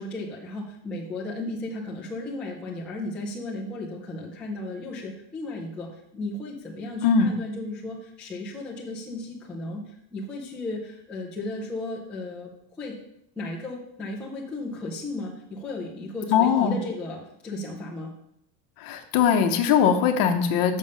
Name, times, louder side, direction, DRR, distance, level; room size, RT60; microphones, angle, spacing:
voice 1, 0.0-12.5 12.8-12.9 13.4-18.1, left 2 dB, 5° left, -5 dB, 0.3 m, -35 dB
voice 2, 16.3-16.8 18.8-20.8, left 7 dB, 45° left, 6 dB, 0.9 m, -21 dB
6.9 x 6.5 x 5.4 m, 0.78 s
cardioid pair, 180°, 49 cm